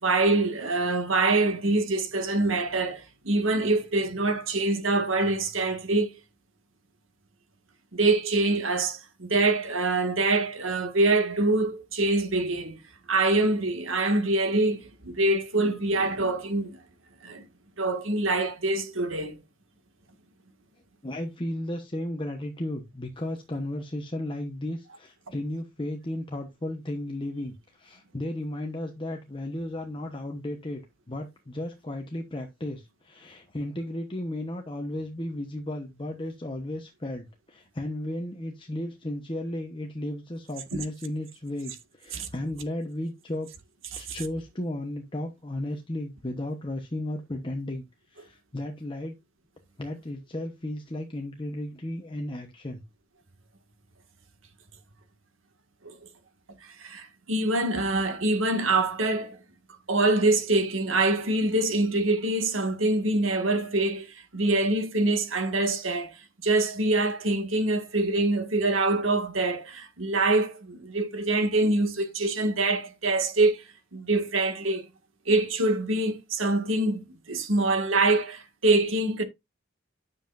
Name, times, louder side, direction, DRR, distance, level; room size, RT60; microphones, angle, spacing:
voice 1, 0.0-6.2 7.9-12.8 13.1-16.7 17.2-17.5 17.8-19.4 40.7-40.8 42.1-42.3 43.9-44.0 55.8-55.9 56.6-59.4 59.9-73.6 73.9-74.8 75.3-79.2, right 2 dB, 65° right, 1.9 m, -25 dB
voice 2, 21.0-30.8 31.1-43.5 44.0-49.2 49.8-52.8, left 1 dB, 25° left, 1.1 m, -34 dB
10.0 x 7.2 x 2.6 m
head